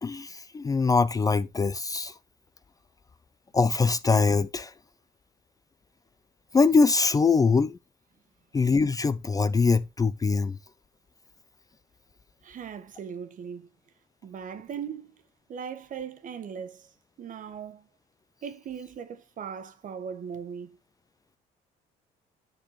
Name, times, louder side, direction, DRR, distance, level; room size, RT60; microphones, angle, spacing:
voice 1, 0.0-2.1 3.5-4.7 6.5-7.8 8.5-10.6, left 4 dB, 20° left, 0.5 m, -23 dB
voice 2, 12.4-13.7 14.2-15.2 15.5-16.9 17.2-17.8 18.4-20.8, right 7 dB, 50° right, 1.4 m, -39 dB
10.0 x 6.6 x 3.1 m
cardioid pair, 110°, 17 cm